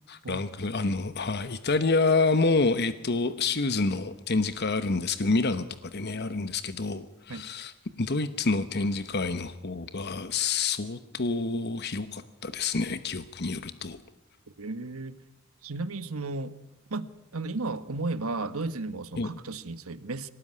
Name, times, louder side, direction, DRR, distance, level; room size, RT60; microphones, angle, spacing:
voice 1, 0.1-7.7 8.0-14.0 19.2-19.3, left 3 dB, 50° left, 11 dB, 1.0 m, -28 dB
voice 2, 14.6-15.2 15.6-16.6 16.9-20.3, right 3 dB, 80° right, 12 dB, 1.4 m, -34 dB
25.0 x 18.0 x 9.8 m, 0.88 s
head